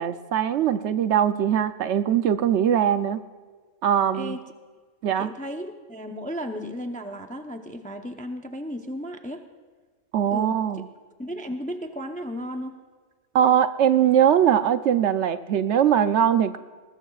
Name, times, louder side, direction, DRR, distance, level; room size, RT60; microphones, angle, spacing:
voice 1, 0.0-3.2 3.8-4.4 5.0-5.3 10.1-10.8 13.3-16.6, right 9 dB, 70° right, 11 dB, 0.8 m, -21 dB
voice 2, 4.1-4.4 5.2-9.4 10.3-10.8 11.2-12.8, equal, 10° left, 5 dB, 0.5 m, -34 dB
21.5 x 19.0 x 2.4 m, 1.4 s
omnidirectional pair, 1.3 m